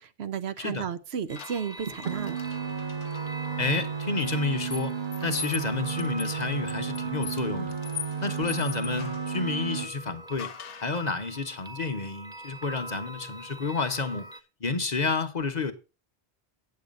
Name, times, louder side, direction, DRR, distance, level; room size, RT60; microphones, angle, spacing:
voice 1, 0.0-2.4, right 7 dB, 70° right, 0.9 m, -33 dB
sound 1, 1.3-3.2 4.2-9.3 10.4-11.0, left 7 dB, 85° left, 1.1 m, -41 dB
sound 2, 1.3-14.4, right 1 dB, 5° right, 0.9 m, -44 dB
sound 3, 1.9-9.9, right 7 dB, 50° right, 1.2 m, -33 dB
voice 2, 3.6-4.9 5.2-7.8 8.2-10.5 10.8-14.3 14.6-15.7, left 4 dB, 40° left, 1.0 m, -30 dB
8.5 x 8.2 x 5.2 m
omnidirectional pair, 1.2 m